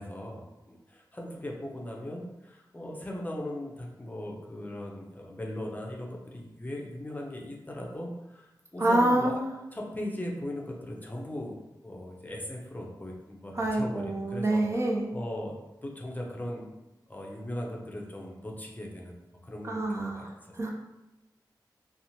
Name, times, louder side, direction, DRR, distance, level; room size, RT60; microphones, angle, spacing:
voice 1, 0.0-9.3 9.7-11.6 11.8-14.9 15.1-15.6 15.8-16.7 17.1-19.2 19.4-20.7, left 1 dB, 20° left, -1 dB, 0.5 m, -38 dB
voice 2, 8.8-9.5 13.5-15.1 19.6-20.7, right 1 dB, 35° right, 0 dB, 0.4 m, -27 dB
2.9 x 2.0 x 2.7 m, 0.98 s
cardioid pair, 55°, 8 cm